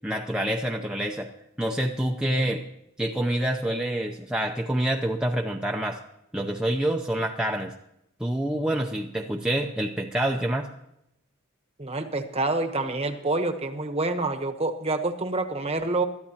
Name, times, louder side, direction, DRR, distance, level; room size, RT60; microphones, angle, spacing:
voice 1, 0.0-1.3 1.6-2.6 3.0-6.0 6.3-7.7 8.2-10.7, right 1 dB, 5° right, 1 dB, 0.6 m, -27 dB
voice 2, 11.8-16.1, right 2 dB, 30° right, 7 dB, 1.0 m, -27 dB
22.0 x 13.0 x 2.9 m, 0.81 s
head